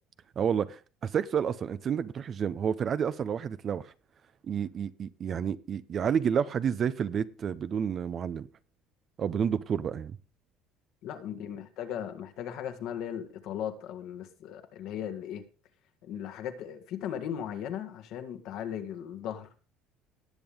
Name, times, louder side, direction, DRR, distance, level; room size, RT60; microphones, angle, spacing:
voice 1, 0.4-3.9 4.4-8.5 9.2-10.2, right 7 dB, 45° right, 0.7 m, -30 dB
voice 2, 11.0-15.4 16.0-19.5, left 9 dB, 65° left, 1.7 m, -37 dB
18.5 x 7.1 x 3.6 m
supercardioid pair, 80°, 0 cm